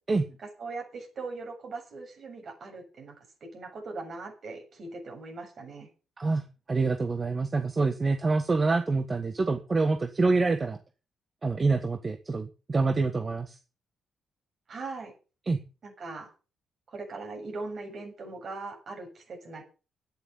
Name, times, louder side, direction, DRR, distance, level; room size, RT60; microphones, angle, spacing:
voice 1, 0.6-3.2 3.5-5.9 14.7-15.1 15.8-16.3 16.9-19.6, right 3 dB, 55° right, 3 dB, 7.2 m, -40 dB
voice 2, 6.2-10.8 11.4-13.6 15.5-15.6, right 3 dB, 35° right, 9 dB, 1.4 m, -26 dB
10.5 x 10.0 x 7.1 m, 0.34 s
supercardioid pair, 65°, 0 cm